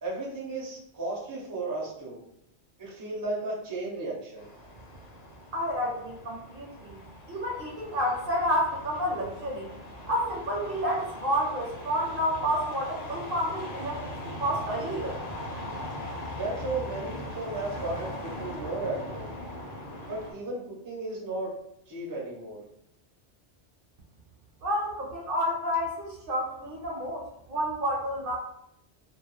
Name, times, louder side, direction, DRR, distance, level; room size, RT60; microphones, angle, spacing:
voice 1, 0.0-2.2 2.8-4.5 16.3-19.3 20.1-21.5 21.9-22.6, right 2 dB, 25° right, -3 dB, 0.5 m, -34 dB
sound 1, 4.4-20.3, left 1 dB, 45° left, 0.6 m, -40 dB
voice 2, 5.5-7.0 7.3-9.7 10.1-15.2 24.6-28.4, equal, 60° right, -2 dB, 0.8 m, -30 dB
2.3 x 2.1 x 3.1 m, 0.78 s
omnidirectional pair, 1.2 m